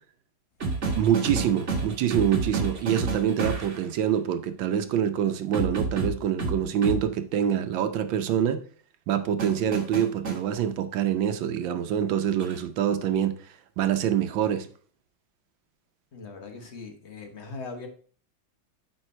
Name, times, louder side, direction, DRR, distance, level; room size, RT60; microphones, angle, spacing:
sound 1, 0.6-3.8 5.5-7.0 9.4-10.4 12.4-12.6, right 3 dB, 40° right, 1.5 m, -29 dB
voice 1, 1.0-8.6 9.1-13.3 13.8-14.7, right 9 dB, 80° right, 9 dB, 1.5 m, -25 dB
voice 2, 16.1-17.9, left 4 dB, 40° left, 4 dB, 1.4 m, -40 dB
9.2 x 4.0 x 4.3 m, 0.44 s
omnidirectional pair, 2.1 m